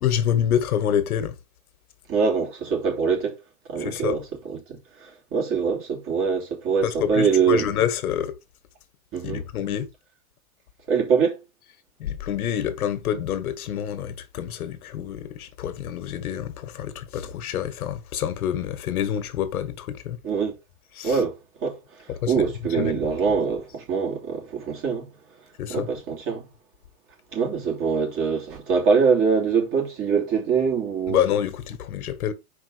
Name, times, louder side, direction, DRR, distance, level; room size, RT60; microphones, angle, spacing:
voice 1, 0.0-1.3 3.8-4.2 6.8-8.3 9.2-9.9 12.0-20.2 21.0-21.2 22.2-22.4 22.8-23.0 25.6-25.9 31.1-32.3, left 9 dB, 80° left, 1.7 m, -27 dB
voice 2, 2.1-3.4 3.7-7.7 9.1-9.4 10.9-11.4 20.2-20.5 21.0-25.1 25.7-26.5 27.3-31.2, right 5 dB, 30° right, 3.1 m, -24 dB
5.8 x 5.0 x 5.0 m
supercardioid pair, 145°, 44 cm